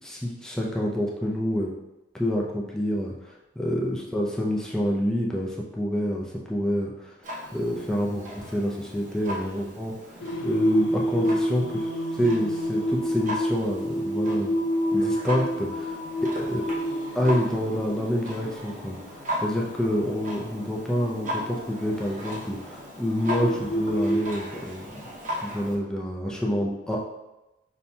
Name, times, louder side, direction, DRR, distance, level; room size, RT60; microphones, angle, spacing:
voice 1, 0.0-1.7 2.1-7.1 7.5-14.6 14.9-16.0 16.4-16.6 17.1-19.1 19.4-25.0 25.4-27.0, equal, 5° left, -3 dB, 0.5 m, -27 dB
Clock, 7.2-25.8, equal, 45° right, 0.8 m, -38 dB
Singing, 10.2-24.2, equal, 70° left, 0.4 m, -30 dB
5.5 x 2.7 x 2.3 m, 0.97 s
head